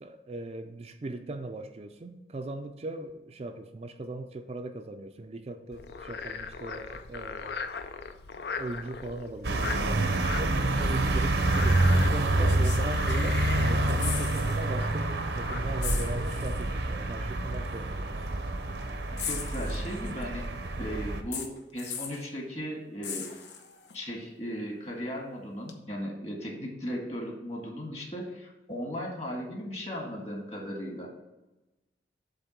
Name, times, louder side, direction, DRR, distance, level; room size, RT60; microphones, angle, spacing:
voice 1, 0.0-7.7 8.6-18.3, right 2 dB, 35° right, 6 dB, 0.4 m, -39 dB
Frog, 5.7-16.0, left 5 dB, 65° left, 0.5 m, -40 dB
sound 1, 9.4-21.2, right 2 dB, 70° right, 0.7 m, -27 dB
sound 2, 11.5-11.7 12.4-13.5 13.8-14.6 14.9-15.1 15.8-16.7 17.7-17.8 19.2-20.2 21.3-22.3 23.0-23.9 25.7-25.8, left 6 dB, 85° left, 0.9 m, -38 dB
voice 2, 19.1-20.4 20.8-23.3 23.9-31.1, equal, 35° left, 0 dB, 1.7 m, -37 dB
7.8 x 3.6 x 5.9 m, 1.0 s
head